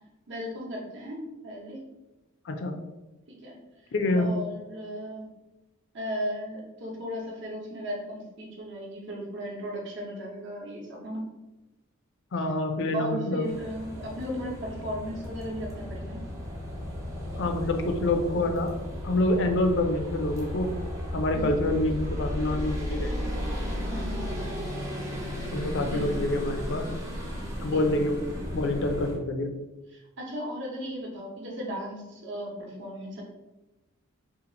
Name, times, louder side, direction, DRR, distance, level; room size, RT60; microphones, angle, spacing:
voice 1, 0.3-1.8 3.3-3.6 4.2-5.3 5.9-11.2 12.9-16.2 21.3-21.6 23.9-24.3 25.9-26.2 27.7-28.0 29.9-33.2, equal, 55° right, -2 dB, 0.9 m, -36 dB
voice 2, 3.9-4.3 12.3-13.4 17.4-18.7 19.0-20.7 21.1-23.3 25.5-26.9 27.6-28.2 28.5-29.5, left 2 dB, 55° left, 5 dB, 0.5 m, -27 dB
sound 1, 13.4-29.2, equal, 15° right, 0.6 m, -34 dB
2.8 x 2.4 x 3.9 m, 1.0 s
head